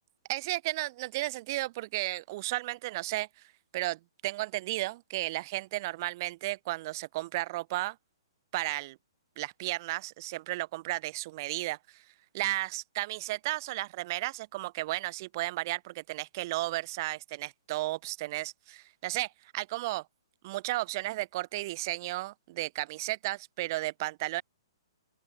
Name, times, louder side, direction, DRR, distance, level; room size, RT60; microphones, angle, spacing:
voice 1, 0.3-3.3 3.7-8.0 8.5-9.0 9.4-12.0 12.3-20.1 20.4-24.4, right 19 dB, 45° right, 2.1 m, -34 dB
open air
hypercardioid pair, 135°, 3 cm